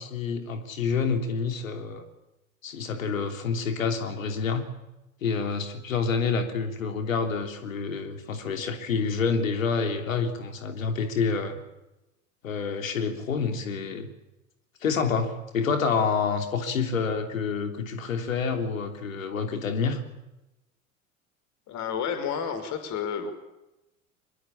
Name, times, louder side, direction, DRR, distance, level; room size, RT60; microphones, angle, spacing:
voice 1, 0.0-2.1 2.6-4.6 5.2-11.6 12.4-14.1 14.8-20.0, left 5 dB, 70° left, 6 dB, 3.3 m, -28 dB
voice 2, 21.7-23.3, left 7 dB, 45° left, 8 dB, 5.5 m, -30 dB
24.0 x 22.0 x 8.6 m, 0.96 s
figure-of-eight pair, 75°, 41 cm